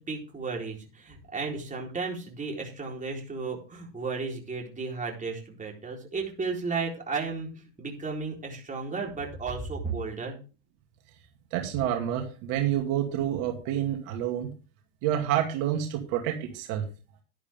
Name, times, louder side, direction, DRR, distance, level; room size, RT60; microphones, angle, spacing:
voice 1, 0.0-10.4, right 4 dB, 20° right, -1 dB, 4.1 m, -34 dB
voice 2, 11.5-14.5 15.0-16.8, right 11 dB, 65° right, 3 dB, 2.4 m, -28 dB
11.0 x 11.0 x 3.6 m, 0.34 s
supercardioid pair, 105°, 42 cm